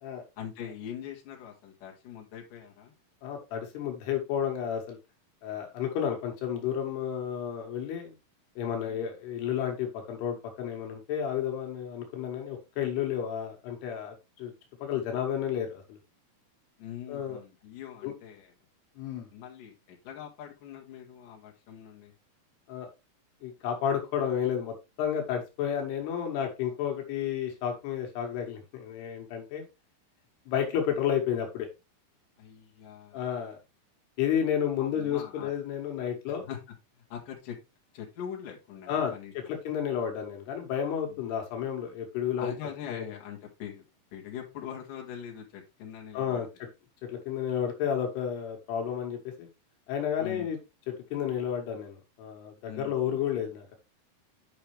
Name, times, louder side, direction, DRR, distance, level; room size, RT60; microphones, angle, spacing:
voice 1, 0.4-2.9 8.8-9.0 16.8-18.5 19.3-22.1 32.4-33.2 34.8-35.5 36.3-36.6 36.9-37.6 37.9-39.6 41.1-41.2 42.4-43.8 44.1-46.5 50.2-50.5 52.6-53.2, left 9 dB, 60° left, -1 dB, 3.3 m, -42 dB
voice 2, 3.2-5.0 5.4-8.1 8.6-14.5 14.8-16.0 17.1-17.4 18.0-18.1 19.0-19.3 22.7-22.9 23.4-29.7 30.5-31.7 33.1-33.6 34.2-36.5 38.9-42.5 42.9-43.0 46.1-46.7 47.1-49.5 49.9-50.6 50.9-53.8, left 9 dB, 85° left, 3 dB, 3.7 m, -31 dB
10.0 x 5.6 x 3.3 m, 0.25 s
omnidirectional pair, 4.6 m